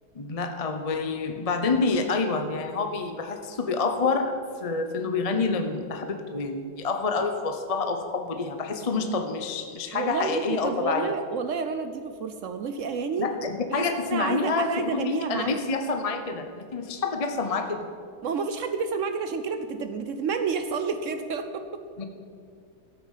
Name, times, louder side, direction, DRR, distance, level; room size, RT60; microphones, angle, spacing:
voice 1, 0.1-11.2 13.2-17.9 22.0-22.1, left 4 dB, 35° left, 5 dB, 0.6 m, -28 dB
voice 2, 9.9-13.3 13.7-15.7 18.2-21.8, right 5 dB, 85° right, 8 dB, 0.6 m, -30 dB
14.0 x 8.8 x 7.4 m, 2.3 s
omnidirectional pair, 2.2 m